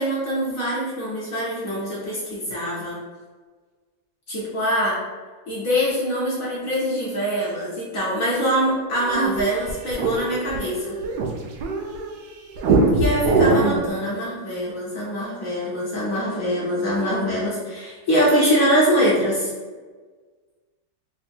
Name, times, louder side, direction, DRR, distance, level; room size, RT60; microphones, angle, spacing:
voice 1, 0.0-3.0 4.3-5.0 5.5-11.0 12.9-19.5, equal, 55° left, -6 dB, 1.0 m, -23 dB
sound 1, 9.1-12.1 12.6-13.9, right 3 dB, 75° right, 1.2 m, -21 dB
3.7 x 2.0 x 4.2 m, 1.4 s
omnidirectional pair, 2.2 m